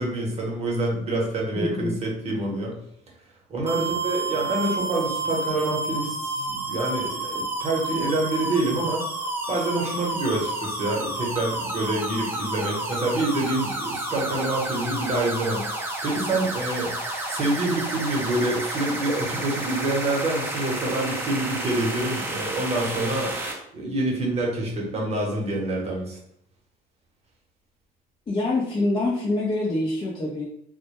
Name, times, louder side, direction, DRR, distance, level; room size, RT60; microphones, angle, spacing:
voice 1, 0.0-2.8 3.5-9.1 9.5-16.9 17.3-23.3 23.7-26.2, right 2 dB, 40° right, -2 dB, 0.9 m, -27 dB
voice 2, 1.5-2.0 28.3-30.4, left 2 dB, 30° left, -6 dB, 0.6 m, -25 dB
sound 1, 3.7-23.5, right 2 dB, 15° right, 0.5 m, -30 dB
2.1 x 2.1 x 2.9 m, 0.71 s
cardioid pair, 110°, 17 cm